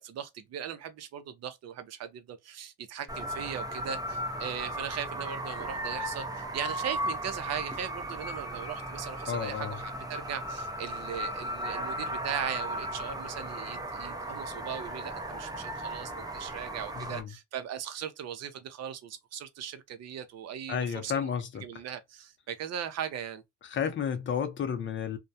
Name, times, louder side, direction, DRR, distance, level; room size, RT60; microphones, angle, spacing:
voice 1, 0.0-21.3 21.6-23.4, right 9 dB, 55° right, 0.6 m, -39 dB
sound 1, 3.1-17.2, right 1 dB, 10° right, 0.6 m, -36 dB
voice 2, 9.3-9.8 16.9-17.3 20.7-21.6 23.6-25.2, left 7 dB, 40° left, 0.6 m, -32 dB
2.3 x 2.1 x 2.6 m
cardioid pair, 120°, 32 cm